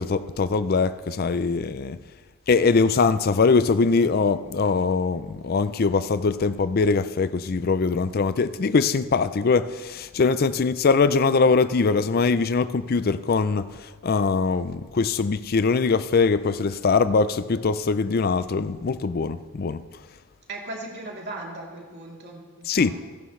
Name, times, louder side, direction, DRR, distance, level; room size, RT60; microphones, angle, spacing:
voice 1, 0.0-2.0 2.5-19.8 22.7-22.9, left 4 dB, 45° left, 0.4 m, -22 dB
voice 2, 20.5-23.0, right 2 dB, 50° right, 3.1 m, -37 dB
28.0 x 11.5 x 3.2 m
head